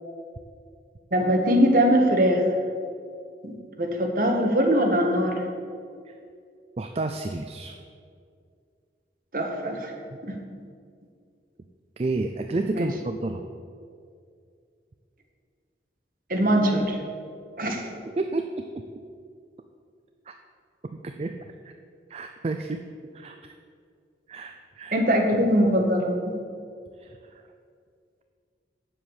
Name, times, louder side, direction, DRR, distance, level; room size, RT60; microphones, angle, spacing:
voice 1, 1.1-2.4 3.4-5.5 9.3-9.9 10.2-10.4 12.7-12.9 16.3-17.0 17.6-17.8 24.9-26.4, equal, 50° right, 2 dB, 1.4 m, -22 dB
voice 2, 6.8-7.8 10.1-10.2 12.0-13.4 18.1-18.8 20.3-20.4 20.8-21.4 21.6-21.7 22.1-22.8 23.1-23.4 24.3-25.0 27.0-27.4, right 2 dB, 35° right, 6 dB, 0.4 m, -31 dB
8.1 x 7.6 x 7.2 m, 2.3 s
head